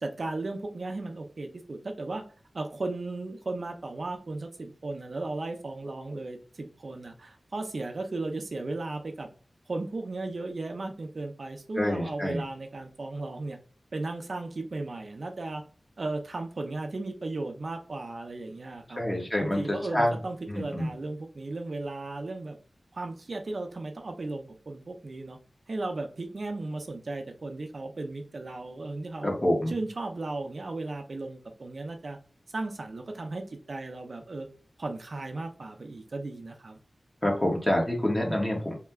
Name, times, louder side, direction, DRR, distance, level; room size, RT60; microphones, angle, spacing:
voice 1, 0.0-2.2 2.5-9.3 9.7-13.6 13.9-15.6 16.0-19.0 19.4-22.6 22.9-25.4 25.7-29.3 29.7-32.2 32.5-34.5 34.8-36.8, right 2 dB, 60° right, 5 dB, 0.5 m, -35 dB
voice 2, 11.8-12.4 19.0-20.2 20.5-20.9 29.2-29.7 37.2-38.7, left 1 dB, 20° left, -2 dB, 1.4 m, -27 dB
3.2 x 2.9 x 3.5 m, 0.39 s
wide cardioid pair, 85°, 0 cm